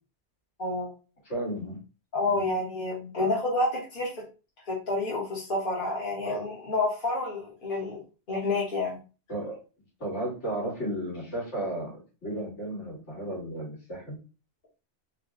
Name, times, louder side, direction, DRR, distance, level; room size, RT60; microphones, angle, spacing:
voice 1, 0.6-0.9 2.1-4.2 4.7-8.0 8.3-9.0, left 2 dB, 45° left, -5 dB, 1.4 m, -29 dB
voice 2, 1.3-1.8 2.3-2.5 3.2-3.3 6.2-6.5 9.3-9.6 10.0-14.2, right 1 dB, 70° left, -5 dB, 2.3 m, -34 dB
4.1 x 2.2 x 3.5 m, 0.34 s
omnidirectional pair, 1.2 m